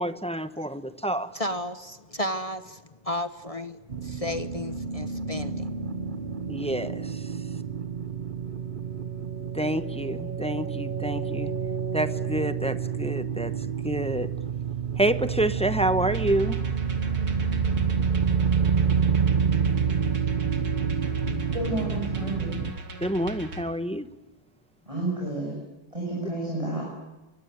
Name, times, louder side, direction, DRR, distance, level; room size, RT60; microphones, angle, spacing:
voice 1, 0.0-1.3 6.5-7.0 9.5-11.5 11.9-13.5 13.8-14.3 15.0-16.6 23.0-24.1, right 1 dB, 5° left, 11 dB, 0.6 m, -27 dB
voice 2, 1.3-5.7, left 1 dB, 25° left, 9 dB, 1.0 m, -33 dB
sound 1, 3.9-22.7, right 6 dB, 35° right, 0.8 m, -28 dB
sound 2, 16.1-23.6, right 1 dB, 55° right, 3.0 m, -38 dB
voice 3, 21.5-22.6 24.9-25.6 25.9-26.9, right 2 dB, 15° right, -3 dB, 7.4 m, -30 dB
24.5 x 23.5 x 9.5 m, 1.1 s
omnidirectional pair, 2.0 m